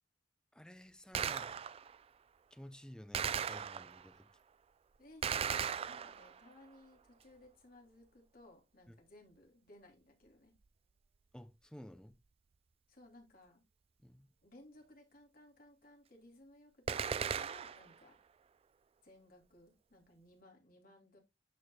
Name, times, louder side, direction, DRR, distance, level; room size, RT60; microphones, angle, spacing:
voice 1, 0.5-1.6 2.5-4.3 8.9-9.0 11.3-12.2 14.0-14.3, equal, 5° left, 0.6 m, -53 dB
Gunshot gunfire, 1.1-2.0 3.1-4.1 5.2-6.5 16.9-17.9, right 7 dB, 30° right, 0.3 m, -37 dB
voice 2, 5.0-10.5 12.9-13.6 14.4-18.2 19.0-21.2, left 1 dB, 50° left, 3.1 m, -60 dB
13.0 x 4.6 x 2.3 m
head